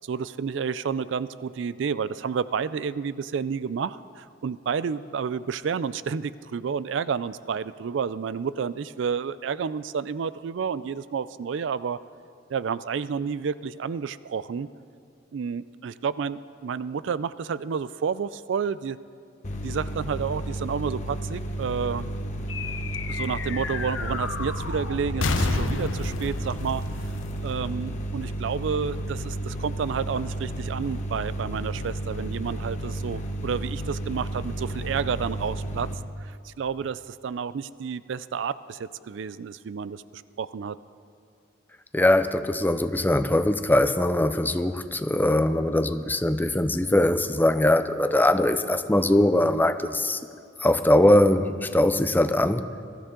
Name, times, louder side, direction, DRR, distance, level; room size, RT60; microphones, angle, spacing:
voice 1, 0.0-12.0 12.5-14.7 15.3-19.0 19.6-22.1 23.1-26.8 27.4-35.9 36.2-40.8, right 6 dB, 65° right, 16 dB, 0.4 m, -30 dB
sound 1, 19.4-36.0, right 1 dB, 40° left, 1.1 m, -32 dB
sound 2, 22.5-28.2, left 3 dB, 75° left, 0.9 m, -31 dB
voice 2, 41.9-50.2 50.6-52.7, left 1 dB, 10° left, 10 dB, 0.5 m, -21 dB
22.0 x 13.5 x 3.8 m, 2.3 s
head